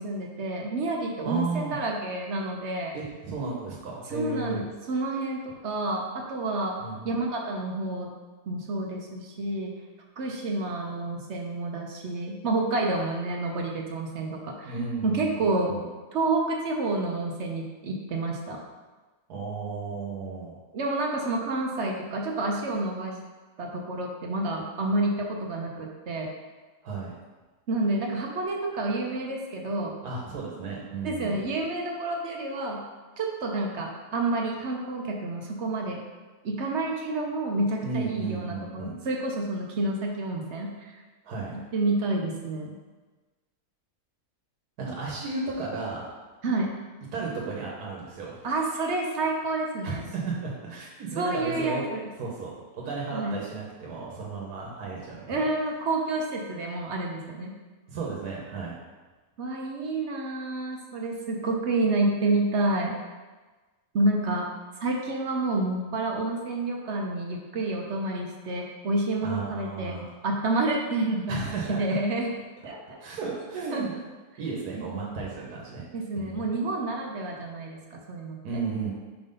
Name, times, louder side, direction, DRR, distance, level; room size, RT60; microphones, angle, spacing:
voice 1, 0.0-2.9 4.1-6.8 7.0-8.1 8.5-9.7 10.2-14.7 15.0-15.8 16.1-18.6 20.7-23.2 23.6-26.3 27.7-29.9 31.0-32.8 33.2-36.0 36.4-40.9 41.5-42.8 46.4-46.7 48.4-50.0 51.2-52.0 53.1-53.4 55.3-57.5 59.4-63.0 63.9-64.5 64.8-70.0 70.2-71.4 71.7-72.3 72.6-73.0 73.7-74.0 74.8-75.1 75.9-78.4, right 2 dB, 55° right, 0 dB, 0.9 m, -29 dB
voice 2, 1.2-1.8 2.9-4.6 6.8-7.1 14.7-15.8 19.3-20.6 26.8-27.1 30.0-31.4 37.8-39.0 41.2-41.6 44.8-46.1 47.1-48.4 49.8-51.8 52.2-52.5 52.8-55.4 57.9-58.7 69.2-70.1 71.3-72.0 73.0-73.9 74.4-75.9 76.1-76.5 78.4-78.9, right 4 dB, 85° right, -3 dB, 1.5 m, -34 dB
4.8 x 3.8 x 5.2 m, 1.3 s
omnidirectional pair, 1.6 m